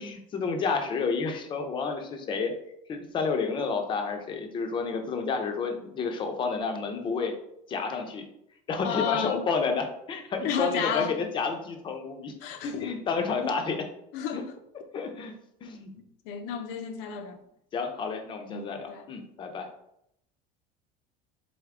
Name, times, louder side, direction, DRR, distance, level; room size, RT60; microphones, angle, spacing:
voice 1, 0.0-2.5 2.9-7.3 7.7-8.3 8.7-12.3 12.6-13.8 14.3-14.4 14.9-15.3 15.6-15.9 17.7-19.7, left 5 dB, 25° left, 0.6 m, -30 dB
voice 2, 8.8-9.4 10.4-11.1 12.4-12.9 13.4-13.5 14.1-14.4 16.3-17.4 18.5-19.1, left 7 dB, 65° left, 0.6 m, -32 dB
3.8 x 3.5 x 3.6 m
cardioid pair, 155°, 19 cm